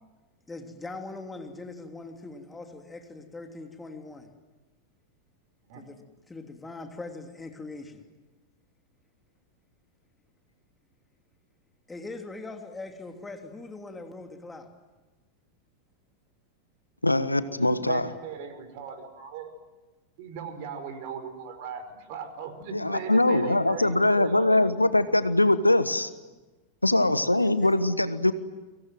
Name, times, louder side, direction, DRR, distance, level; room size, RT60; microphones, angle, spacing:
voice 1, 0.5-4.3 5.7-6.0 6.3-8.0 11.9-14.7 23.3-23.4 27.4-27.7, left 3 dB, 10° left, 4 dB, 3.2 m, -41 dB
voice 2, 17.0-18.1 22.7-26.1 26.8-28.3, left 2 dB, 85° left, 14 dB, 1.2 m, -22 dB
voice 3, 17.6-19.6 20.2-24.7, right 6 dB, 45° right, 9 dB, 5.2 m, -38 dB
30.0 x 25.0 x 7.8 m, 1.2 s
figure-of-eight pair, 90°, 0 cm